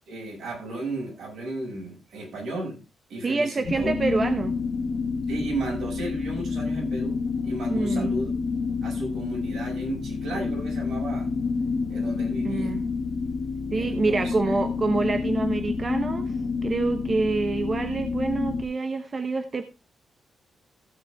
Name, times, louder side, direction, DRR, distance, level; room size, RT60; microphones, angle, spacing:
voice 1, 0.1-2.8 3.1-3.9 5.3-8.3 8.8-11.3 11.9-12.8 13.7-14.3, right 2 dB, 75° right, -1 dB, 6.7 m, -34 dB
voice 2, 3.2-4.5 7.7-8.2 12.4-12.8 13.7-16.3 16.6-19.7, right 3 dB, 30° right, 8 dB, 0.9 m, -26 dB
sound 1, 3.6-18.6, left 4 dB, 40° left, 1.8 m, -28 dB
15.5 x 7.4 x 3.5 m, 0.27 s
wide cardioid pair, 155°, 0 cm